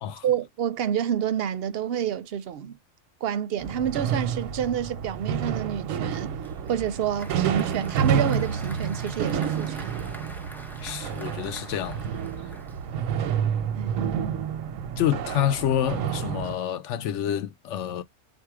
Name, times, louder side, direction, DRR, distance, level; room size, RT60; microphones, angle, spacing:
voice 1, 0.2-2.8 3.2-6.3 6.7-10.0 13.8-14.0, right 9 dB, 65° right, 0.7 m, -28 dB
sound 1, 3.6-16.6, right 8 dB, 90° right, 1.0 m, -29 dB
Applause, 6.1-13.2, equal, 5° left, 0.4 m, -45 dB
voice 2, 10.8-12.0 15.0-18.0, left 10 dB, 75° left, 0.9 m, -28 dB
3.7 x 2.7 x 4.7 m
omnidirectional pair, 1.3 m